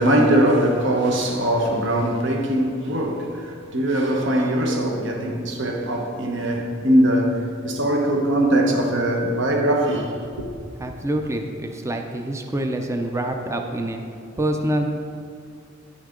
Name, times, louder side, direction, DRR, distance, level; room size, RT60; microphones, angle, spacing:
voice 1, 0.0-10.4, right 1 dB, 65° right, 1.1 m, -21 dB
voice 2, 10.8-14.0 14.4-15.1, right 1 dB, 15° right, 0.5 m, -26 dB
9.6 x 6.4 x 3.7 m
head